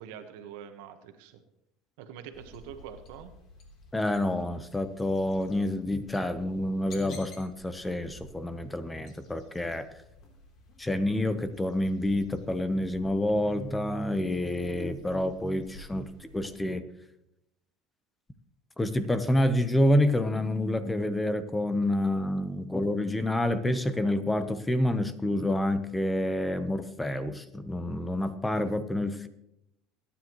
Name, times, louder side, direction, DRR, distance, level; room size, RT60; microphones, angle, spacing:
voice 1, 0.0-1.4 2.0-3.3, right 8 dB, 80° right, 7 dB, 1.4 m, -44 dB
sound 1, 2.3-16.5, left 2 dB, 50° left, 3.6 m, -53 dB
voice 2, 3.9-9.9 10.8-16.1 16.3-16.8 18.8-29.3, left 1 dB, 10° left, 11 dB, 1.0 m, -28 dB
22.5 x 10.0 x 3.2 m, 0.82 s
supercardioid pair, 105°, 0 cm